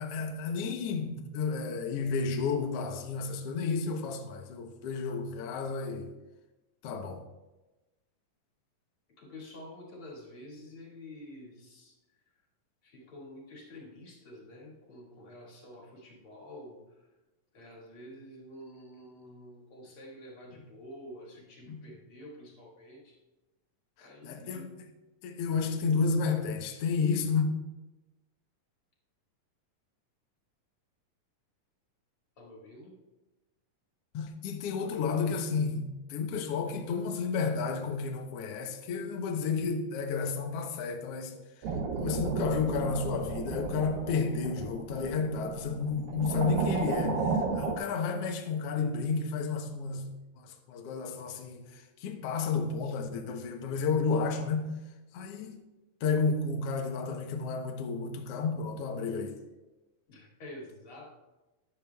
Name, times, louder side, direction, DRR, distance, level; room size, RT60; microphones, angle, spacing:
voice 1, 0.0-6.1 6.8-7.2 21.7-21.8 24.0-24.7 25.2-27.5 34.1-41.4 42.0-54.7 55.1-55.6 56.0-59.4, left 4 dB, 85° left, 1.3 m, -31 dB
voice 2, 9.2-12.0 12.8-16.8 17.5-23.2 24.0-24.7 32.4-33.0 60.1-61.1, left 1 dB, 40° left, 2.6 m, -48 dB
sound 1, 41.6-47.8, right 4 dB, 80° right, 2.6 m, -33 dB
13.5 x 10.5 x 2.3 m
omnidirectional pair, 4.1 m